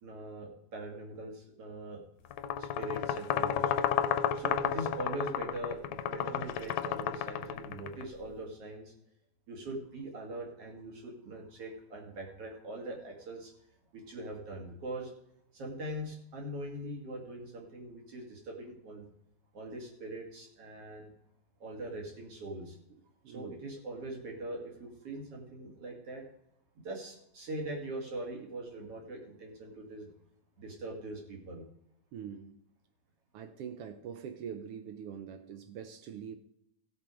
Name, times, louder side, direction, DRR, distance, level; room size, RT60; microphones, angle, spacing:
voice 1, 0.0-2.0 2.6-3.7 4.0-8.9 9.5-13.5 13.9-15.1 15.5-19.1 19.5-21.1 21.6-22.8 23.3-26.2 26.8-30.1 30.6-31.6, right 1 dB, 50° right, 3.1 m, -42 dB
sound 1, 2.3-8.0, left 9 dB, 75° left, 1.7 m, -32 dB
voice 2, 23.2-23.6 32.1-32.5 33.3-36.4, right 8 dB, 80° right, 1.3 m, -43 dB
16.5 x 6.9 x 4.9 m
omnidirectional pair, 3.6 m